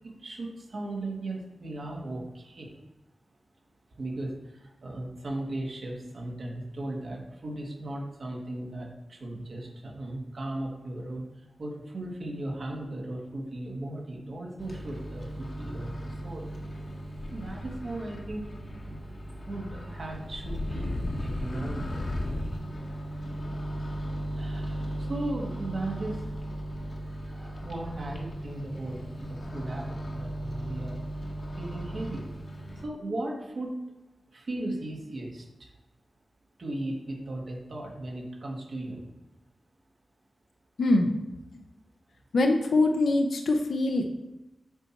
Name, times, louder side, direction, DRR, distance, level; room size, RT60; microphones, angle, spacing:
voice 1, 0.0-2.8 4.0-11.3 11.6-16.5 17.3-18.5 18.9-19.0 19.4-22.3 24.3-26.3 27.1-31.0 31.5-32.3 32.8-33.8 34.3-35.7 36.6-39.0, right 1 dB, 55° right, -1 dB, 1.6 m, -37 dB
Microwave oven, 14.6-32.9, equal, 45° left, 1.0 m, -36 dB
voice 2, 40.8-41.1 42.3-44.2, left 2 dB, 75° left, 4 dB, 0.7 m, -23 dB
7.8 x 4.5 x 4.4 m, 1.0 s
wide cardioid pair, 150°, 0 cm